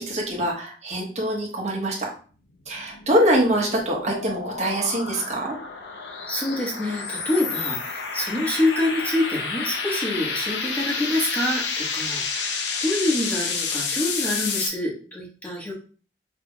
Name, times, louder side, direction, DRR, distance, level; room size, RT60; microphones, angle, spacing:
voice 1, 0.0-2.1 2.7-5.5, right 1 dB, 40° right, -2 dB, 1.3 m, -24 dB
sound 1, 2.7-14.7, left 5 dB, 80° left, 0.7 m, -30 dB
voice 2, 6.3-15.7, left 1 dB, 10° left, -4 dB, 1.3 m, -26 dB
5.8 x 3.4 x 2.3 m, 0.39 s
head